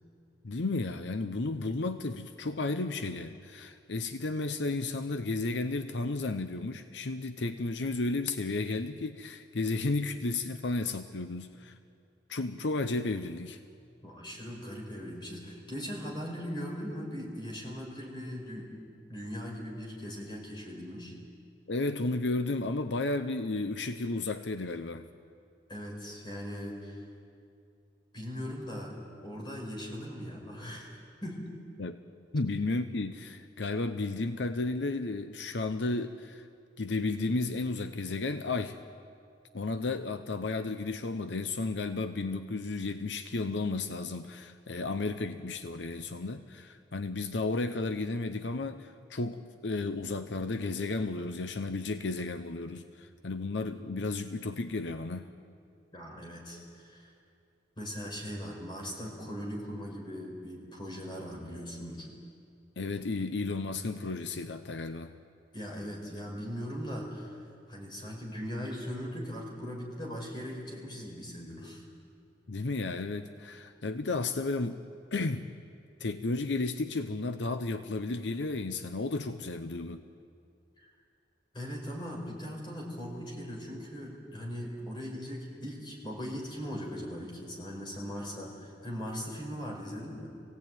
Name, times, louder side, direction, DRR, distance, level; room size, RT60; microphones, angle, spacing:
voice 1, 0.4-11.8 12.3-13.6 21.7-25.1 31.8-32.0 32.3-36.5 36.8-38.8 39.5-55.3 62.8-65.1 72.5-74.8 75.1-75.5 76.0-80.0, left 3 dB, 80° left, 9 dB, 0.8 m, -33 dB
voice 2, 14.0-18.8 19.1-21.1 25.7-27.0 28.1-29.0 29.2-30.9 31.2-31.4 55.9-57.1 57.8-62.1 65.5-67.4 67.7-71.8 80.8-80.9 81.5-90.3, equal, 25° left, 0 dB, 4.9 m, -39 dB
23.5 x 17.0 x 9.1 m, 2.4 s
head